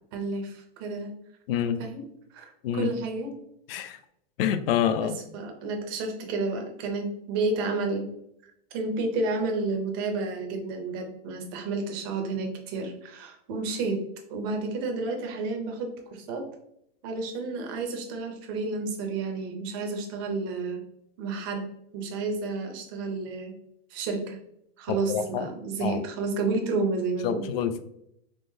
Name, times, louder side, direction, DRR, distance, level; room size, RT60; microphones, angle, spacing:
voice 1, 0.1-1.1 1.8-2.0 2.3-3.3 5.0-8.0 8.7-14.0 14.3-16.4 17.0-20.8 21.2-21.7 21.9-23.5 23.9-24.4 24.8-27.5, right 3 dB, 25° right, 3 dB, 0.4 m, -31 dB
voice 2, 1.5-1.8 2.6-2.9 3.7-4.0 4.4-5.2 25.1-25.5 25.8-26.0 27.2-27.8, left 9 dB, 70° left, 10 dB, 0.4 m, -26 dB
3.7 x 3.3 x 2.6 m, 0.76 s
supercardioid pair, 180°, 31 cm